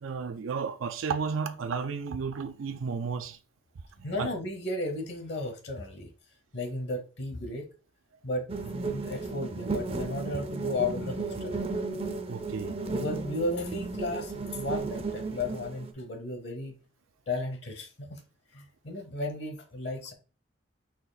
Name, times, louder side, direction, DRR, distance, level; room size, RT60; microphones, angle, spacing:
voice 1, 0.0-3.4 4.0-4.3 12.3-12.8, right 5 dB, 85° right, 0.4 m, -33 dB
voice 2, 4.0-6.1 6.5-7.7 8.2-8.4 8.7-11.6 12.9-16.7 17.3-18.2 18.5-20.1, left 2 dB, 55° left, 0.9 m, -34 dB
sound 1, 8.5-15.9, right 3 dB, 30° right, 0.5 m, -34 dB
4.3 x 2.9 x 4.0 m
head